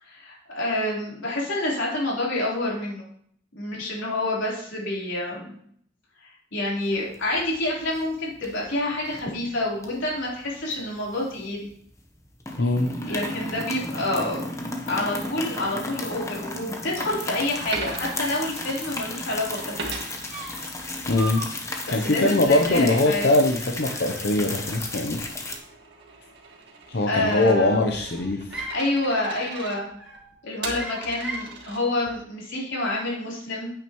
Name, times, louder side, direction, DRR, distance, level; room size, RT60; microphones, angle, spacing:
voice 1, 0.0-3.0 3.6-5.6 6.2-11.7 13.1-14.4 14.8-19.7 21.9-23.2 27.1-27.8 28.7-29.9 30.4-33.7, left 1 dB, 85° left, -4 dB, 3.7 m, -28 dB
sound 1, 6.9-7.5 7.8-8.1 8.4-9.2 9.8-11.7 12.0-12.1 12.4-25.6, left 2 dB, 15° left, 1.0 m, -34 dB
voice 2, 12.6-12.9 21.1-25.2 26.9-28.5, left 2 dB, 60° left, 2 dB, 0.7 m, -22 dB
Coin (dropping), 17.7-19.3 19.8-21.4 21.7-32.2, right 3 dB, 60° right, 1.9 m, -40 dB
sound 2, 19.5-19.9 20.3-20.7 21.2-21.5 21.9-22.2 22.6-23.0 23.8-24.6 24.9-25.6 26.8-27.5 27.9-28.9 29.4-29.7 30.0-30.4 30.7-31.6, right 2 dB, 5° right, 1.7 m, -39 dB
9.2 x 8.8 x 3.1 m, 0.65 s
head